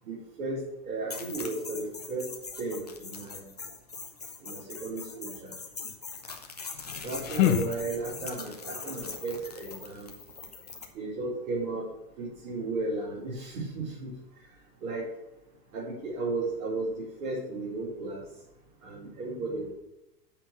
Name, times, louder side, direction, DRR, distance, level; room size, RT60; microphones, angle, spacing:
voice 1, 0.0-2.3 2.6-3.5 4.4-5.5 7.0-10.1 10.9-11.8 12.2-14.1 14.8-15.1 15.7-18.2 18.8-19.7, right 3 dB, 55° right, -7 dB, 3.8 m, -34 dB
sound 1, 1.1-10.9, left 4 dB, 30° left, 0.3 m, -41 dB
sound 2, 6.7-8.4, left 12 dB, 55° left, 0.7 m, -29 dB
7.2 x 5.4 x 6.6 m, 0.91 s
supercardioid pair, 170°, 49 cm